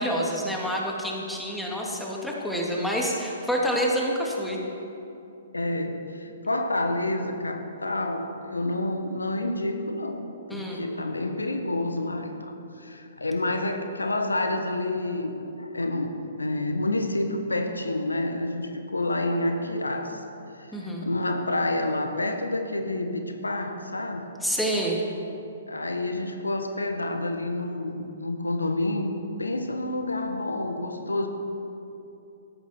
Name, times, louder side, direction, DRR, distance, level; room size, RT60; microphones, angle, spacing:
voice 1, 0.0-4.6 10.5-10.9 20.7-21.1 24.4-25.0, equal, ahead, -3 dB, 2.5 m, -28 dB
voice 2, 5.5-10.2 10.5-16.1 16.4-20.2 20.6-24.3 25.7-29.1 29.4-31.3, left 2 dB, 85° left, 6 dB, 1.4 m, -29 dB
17.5 x 14.0 x 4.6 m, 2.7 s
figure-of-eight pair, 120°, 0 cm